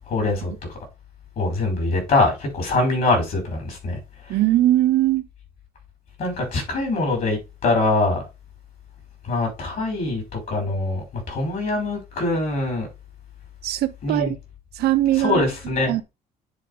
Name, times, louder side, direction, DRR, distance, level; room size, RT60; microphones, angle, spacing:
voice 1, 0.1-0.5 1.4-4.0 6.2-8.2 9.2-12.9 14.0-14.3 15.2-15.9, left 2 dB, 55° left, 5.5 m, -23 dB
voice 2, 4.3-5.2 13.6-14.4 14.7-15.4 15.9-16.0, right 14 dB, 70° right, 0.8 m, -20 dB
9.9 x 4.2 x 3.6 m
cardioid pair, 110°, 17 cm